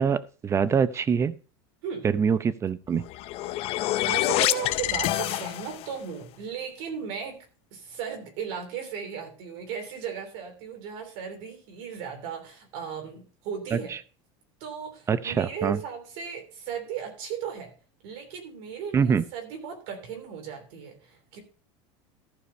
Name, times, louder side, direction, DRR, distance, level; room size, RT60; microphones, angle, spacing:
voice 1, 0.0-1.3 2.0-3.0 13.7-14.0 15.1-15.8 18.9-19.2, right 6 dB, 20° right, 16 dB, 0.6 m, -24 dB
sound 1, 3.0-6.0, left 15 dB, 45° left, 0.6 m, -27 dB
voice 2, 4.0-7.5 7.7-14.0 14.6-17.7 18.0-21.4, right 7 dB, 70° right, 4 dB, 3.2 m, -36 dB
14.5 x 4.9 x 5.4 m, 0.38 s
supercardioid pair, 140°, 14 cm